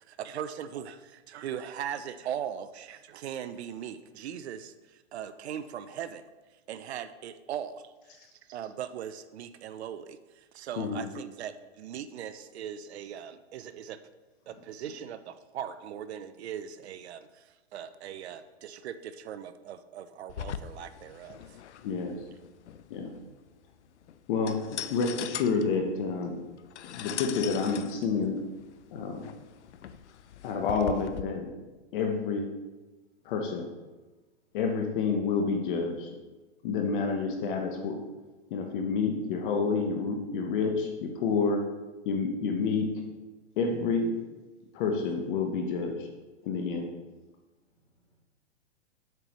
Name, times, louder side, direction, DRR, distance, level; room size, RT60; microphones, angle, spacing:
voice 1, 0.1-6.2 6.7-8.2 8.5-14.0 14.5-21.6, right 9 dB, 70° right, 12 dB, 0.6 m, -39 dB
voice 2, 10.8-11.1 14.5-14.6 21.8-22.3 22.9-23.2 24.3-26.4 26.8-28.4 28.9-29.3 30.4-31.5 31.9-32.5 33.2-33.7 34.5-36.1 36.6-38.1 38.5-41.6 42.0-43.1 43.6-44.2 44.7-46.1 46.4-46.9, left 4 dB, 50° left, 3 dB, 1.1 m, -29 dB
sound 1, 20.3-31.2, left 10 dB, 85° left, 0.5 m, -41 dB
voice 3, 23.7-24.3 30.0-30.5 33.2-33.3 47.7-48.2, right 1 dB, 15° left, -5 dB, 2.5 m, -71 dB
7.7 x 6.8 x 3.1 m, 1.2 s
hypercardioid pair, 135°, 34 cm